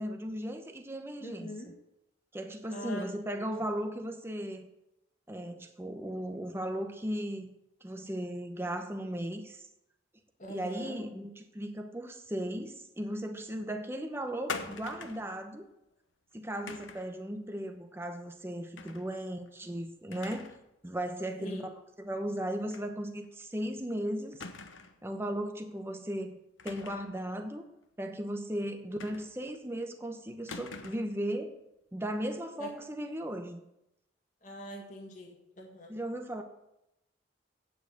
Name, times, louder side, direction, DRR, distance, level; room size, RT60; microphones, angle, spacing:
voice 1, 0.0-1.7 2.3-4.7 5.3-7.5 7.8-9.7 10.5-15.6 16.3-20.5 20.8-21.7 22.0-24.4 25.0-26.4 26.6-27.6 28.0-31.5 31.9-33.6 35.9-36.4, right 1 dB, 10° right, 5 dB, 0.8 m, -36 dB
voice 2, 1.2-1.7 2.7-3.1 3.4-3.5 10.4-11.0 19.1-19.4 21.4-21.7 29.1-29.2 32.6-32.7 34.4-36.0, equal, 40° left, 0 dB, 1.8 m, -43 dB
sound 1, 14.5-15.3 16.7-17.1 18.8-19.1 19.5-19.6 20.1-20.7 21.0-21.1 22.7-22.9 23.2-23.3 24.4-25.0 26.6-27.2 29.0-29.6 30.5-31.2, left 4 dB, 85° left, 1.0 m, -43 dB
8.9 x 7.9 x 8.0 m, 0.87 s
head